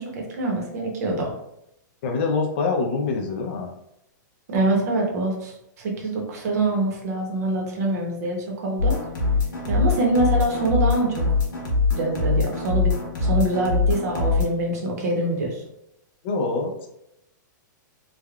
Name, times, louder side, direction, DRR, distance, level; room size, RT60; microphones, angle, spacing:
voice 1, 0.0-1.3 4.5-9.0 9.7-11.3 11.9-12.9 13.2-15.6, right 2 dB, 55° right, 0 dB, 0.8 m, -25 dB
voice 2, 2.0-3.7 16.2-16.9, left 4 dB, 35° left, 2 dB, 0.4 m, -25 dB
sound 1, 8.8-14.4, left 4 dB, 80° left, 1.1 m, -23 dB
3.3 x 2.2 x 2.3 m, 0.80 s
supercardioid pair, 175°, 11 cm